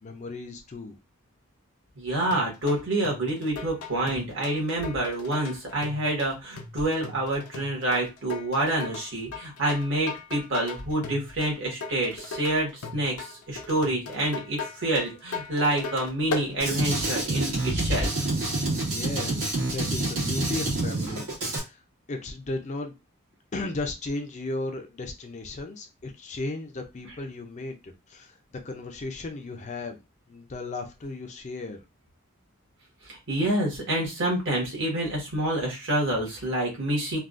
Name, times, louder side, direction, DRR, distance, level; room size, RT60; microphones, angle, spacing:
voice 1, 0.0-1.0 18.9-19.5 19.7-21.8 22.1-23.0 23.5-30.0 30.3-31.8, left 2 dB, 35° left, 0.4 m, -35 dB
voice 2, 1.9-18.1 33.0-37.2, right 1 dB, 60° right, 1.4 m, -27 dB
sound 1, 2.3-16.5, left 4 dB, 75° left, 0.6 m, -38 dB
Drum kit, 16.6-21.6, right 2 dB, 75° right, 1.7 m, -27 dB
3.5 x 2.3 x 2.5 m
head